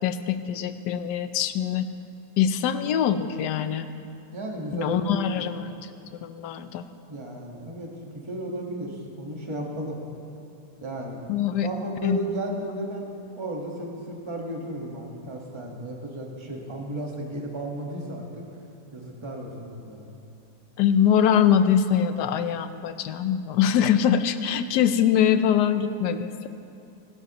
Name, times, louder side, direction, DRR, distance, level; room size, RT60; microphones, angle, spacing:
voice 1, 0.0-1.9 2.4-3.9 4.7-5.7 6.2-6.8 11.3-11.7 12.0-12.2 20.8-26.5, left 8 dB, 80° left, 10 dB, 1.2 m, -23 dB
voice 2, 4.3-5.5 7.1-10.0 10.8-11.2 11.6-13.1 13.3-18.4 18.9-20.1, right 1 dB, 20° right, -1 dB, 1.3 m, -34 dB
22.0 x 12.0 x 3.0 m, 2.6 s
omnidirectional pair, 1.8 m